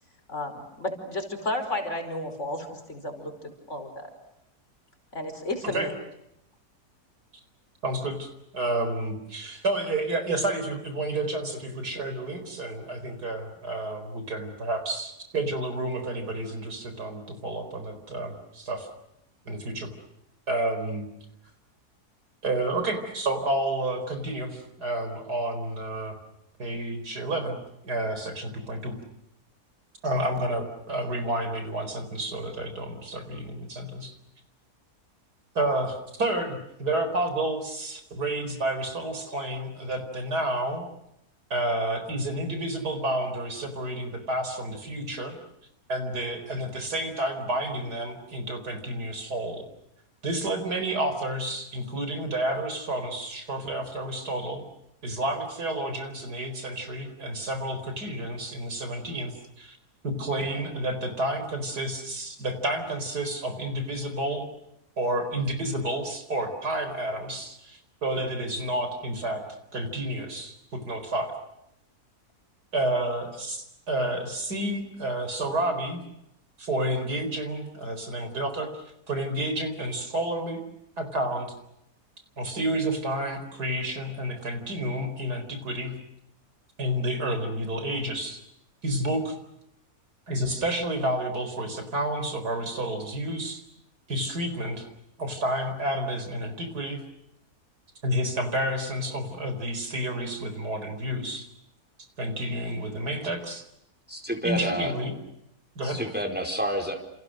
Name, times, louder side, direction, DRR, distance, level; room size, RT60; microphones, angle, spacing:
voice 1, 0.3-3.9 5.1-5.9, left 1 dB, 45° left, 6 dB, 5.4 m, -32 dB
voice 2, 7.8-18.9 19.4-19.9 20.5-21.0 22.4-26.2 26.6-27.6 27.8-29.0 30.0-34.1 35.5-40.8 41.5-45.4 45.9-49.7 50.2-54.6 55.0-59.8 60.0-64.5 65.0-69.4 69.7-71.3 72.7-76.0 76.6-78.7 79.1-80.6 81.0-81.5 82.4-86.0 86.8-88.4 88.8-89.4 90.3-93.6 94.1-94.9 95.2-97.0 98.0-101.5 102.2-103.6 104.4-105.1 105.7-106.0, right 1 dB, 80° right, 7 dB, 4.9 m, -30 dB
voice 3, 104.1-104.9 105.8-107.0, equal, 5° right, 4 dB, 4.5 m, -29 dB
30.0 x 29.0 x 6.5 m, 0.82 s
omnidirectional pair, 1.7 m